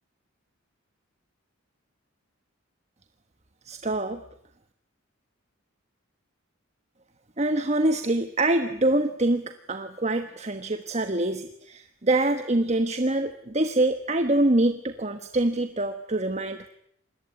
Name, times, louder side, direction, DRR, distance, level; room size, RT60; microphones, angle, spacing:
voice 1, 3.6-4.2 7.4-16.7, right 2 dB, 35° right, 8 dB, 1.3 m, -25 dB
27.5 x 21.0 x 9.4 m, 0.70 s
head